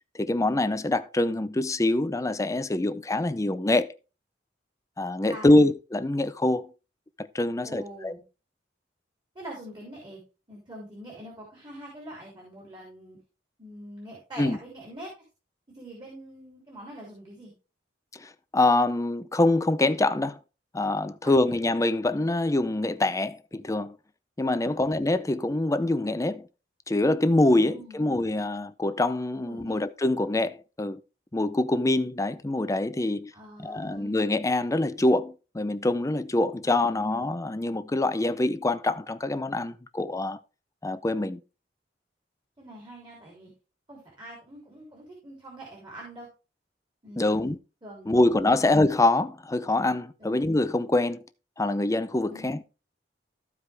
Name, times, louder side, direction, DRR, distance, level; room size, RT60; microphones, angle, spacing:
voice 1, 0.1-3.9 5.0-6.7 7.2-8.1 14.4-14.6 18.1-20.4 20.7-24.0 24.4-26.4 26.9-31.0 31.3-33.3 33.6-40.4 40.8-41.4 47.2-47.6 48.1-51.2 51.6-52.6, left 2 dB, 20° left, 0.5 m, -25 dB
voice 2, 5.2-5.6 7.6-8.2 9.3-10.2 10.5-13.2 13.6-15.1 15.7-17.5 21.2-21.6 24.6-24.9 27.6-28.1 29.4-29.8 33.3-34.2 36.6-37.0 42.6-43.5 43.9-46.3 47.0-47.5 47.8-48.6 50.2-50.4 52.3-52.5, right 1 dB, 25° right, 3.2 m, -44 dB
14.0 x 4.9 x 3.4 m
head